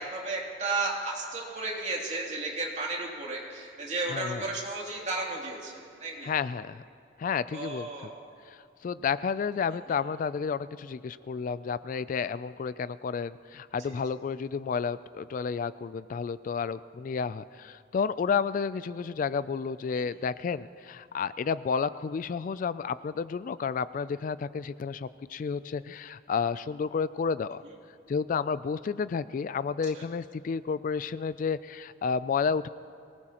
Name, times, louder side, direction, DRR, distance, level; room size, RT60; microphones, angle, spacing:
voice 1, 0.0-6.3 7.5-8.2 13.8-14.0 19.9-20.1 29.9-30.1, right 3 dB, 40° right, -3 dB, 2.7 m, -34 dB
voice 2, 4.1-4.4 6.2-6.8 7.2-7.9 8.5-27.6 28.1-32.7, left 6 dB, 45° left, 16 dB, 0.3 m, -31 dB
24.0 x 19.0 x 2.9 m, 2.6 s
head